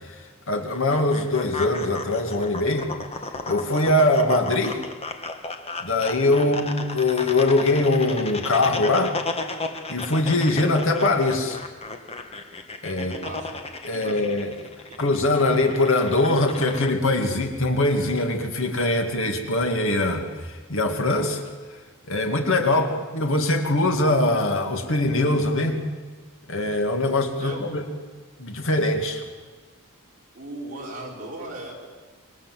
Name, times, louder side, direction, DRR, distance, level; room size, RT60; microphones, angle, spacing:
voice 1, 0.5-2.9 3.5-4.8 5.8-9.2 9.9-11.6 12.8-13.1 13.8-14.7 15.0-21.4 22.1-25.8 26.5-27.8 28.4-29.2, left 2 dB, 65° left, 4 dB, 2.4 m, -22 dB
sound 1, 0.7-16.9, left 3 dB, 30° left, 1.8 m, -35 dB
voice 2, 12.9-13.6 13.9-14.2 14.9-15.0 22.7-23.0 27.4-27.6 30.3-31.8, right 1 dB, 40° right, -3 dB, 6.3 m, -38 dB
26.0 x 24.0 x 7.7 m, 1.4 s
head